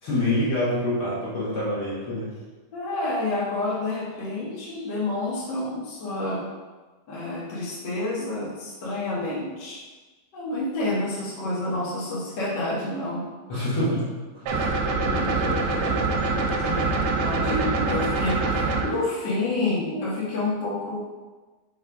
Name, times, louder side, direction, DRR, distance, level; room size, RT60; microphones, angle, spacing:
voice 1, 0.0-2.3 13.5-14.6 14.9-16.2, left 1 dB, 70° left, -9 dB, 1.3 m, -27 dB
voice 2, 2.7-6.4 7.1-9.8 10.3-13.3 14.5-14.7 16.6-21.0, left 2 dB, 85° left, -8 dB, 0.9 m, -29 dB
sound 1, 14.5-18.9, right 3 dB, 85° right, 3.0 m, -24 dB
5.7 x 5.5 x 3.5 m, 1.3 s
omnidirectional pair, 4.9 m